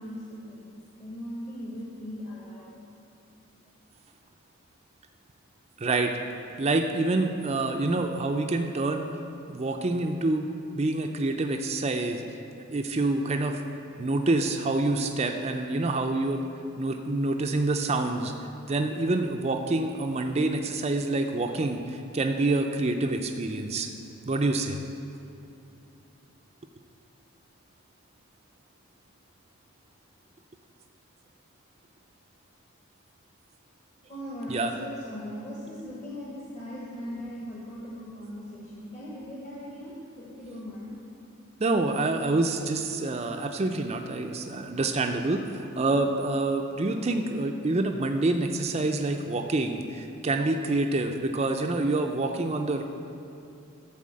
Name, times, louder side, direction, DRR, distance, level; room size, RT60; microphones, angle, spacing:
voice 1, 0.0-2.7 34.1-40.9, equal, 30° left, -5 dB, 1.1 m, -39 dB
voice 2, 5.8-6.2 6.6-9.0 9.5-10.5 10.7-12.2 12.6-13.6 14.0-16.4 16.8-18.3 18.7-23.9 24.3-24.8 34.5-34.7 41.6-52.8, right 2 dB, 30° right, 4 dB, 0.4 m, -27 dB
12.0 x 4.2 x 7.5 m, 2.6 s
head